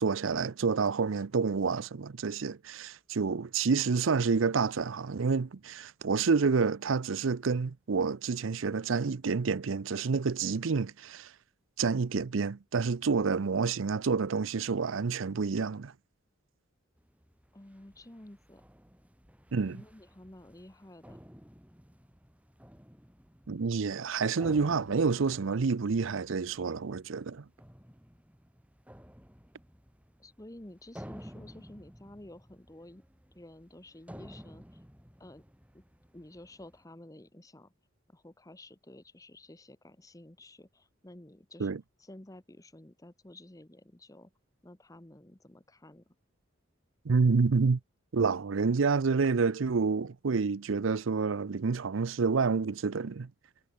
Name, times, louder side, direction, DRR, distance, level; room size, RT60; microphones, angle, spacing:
voice 1, 0.0-11.3 11.8-15.9 19.5-19.8 23.5-27.4 41.6-41.8 47.0-47.8 48.1-53.3, right 4 dB, 70° right, 0.6 m, -28 dB
sound 1, 17.0-36.8, equal, 5° right, 6.3 m, -53 dB
voice 2, 17.5-18.6 19.7-21.2 30.2-33.0 33.3-34.8 35.2-35.4 35.7-35.8 36.1-37.7 38.1-41.7 42.0-44.3 44.6-46.1, left 1 dB, 15° left, 1.0 m, -51 dB
head